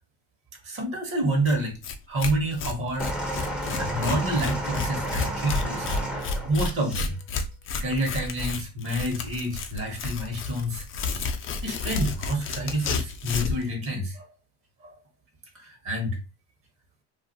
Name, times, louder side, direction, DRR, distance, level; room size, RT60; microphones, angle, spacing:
voice 1, 0.6-1.8 2.1-3.1 3.8-7.1 7.8-10.8 11.6-14.3 14.8-15.0 15.5-16.2, right 1 dB, 40° right, 1.1 m, -28 dB
Tearing, 1.5-1.6 1.8-1.9 2.2-13.6, left 4 dB, 40° left, 0.6 m, -31 dB
sound 1, 3.0-7.1 8.0-8.1, right 1 dB, 5° right, 0.7 m, -32 dB
2.4 x 2.4 x 2.6 m
supercardioid pair, 90°, 33 cm